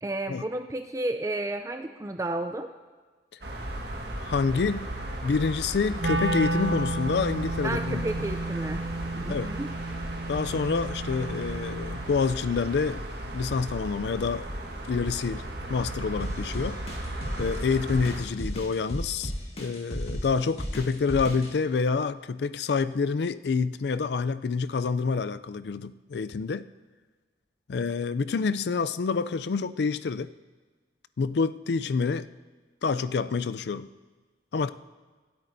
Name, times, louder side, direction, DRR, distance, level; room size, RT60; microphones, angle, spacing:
voice 1, 0.0-2.7 7.6-8.9 9.2-9.7, right 2 dB, 20° right, 7 dB, 0.4 m, -32 dB
sound 1, 3.4-18.2, right 1 dB, 65° right, 1.6 m, -36 dB
voice 2, 4.2-4.9 5.2-8.1 9.3-9.5 10.3-13.1 13.3-14.5 14.9-15.4 15.7-16.8 17.4-19.3 19.6-26.7 27.7-30.3 31.2-32.3 32.8-33.9 34.5-34.7, left 5 dB, 70° left, 14 dB, 0.4 m, -27 dB
Wind instrument woodwind instrument, 6.0-12.1, right 2 dB, 85° right, 1.4 m, -32 dB
sound 2, 16.2-21.5, equal, 35° left, 1.7 m, -34 dB
26.0 x 8.8 x 2.7 m, 1.4 s
head